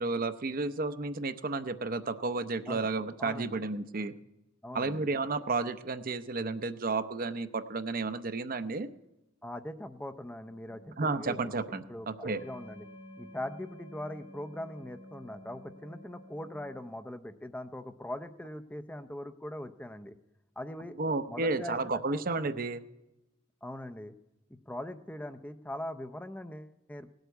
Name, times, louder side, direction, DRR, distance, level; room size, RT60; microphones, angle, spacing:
voice 1, 0.0-4.1 4.7-8.9 11.0-12.4 21.0-22.8, right 3 dB, 45° right, 10 dB, 0.7 m, -32 dB
voice 2, 3.2-3.6 4.6-5.0 9.4-12.8 13.2-20.1 20.6-21.0 21.3-22.2 23.6-24.1 24.7-27.1, left 1 dB, 10° left, 9 dB, 0.5 m, -41 dB
sound 1, 10.5-16.8, left 1 dB, 40° left, 3.7 m, -51 dB
18.0 x 8.0 x 8.2 m, 0.97 s
head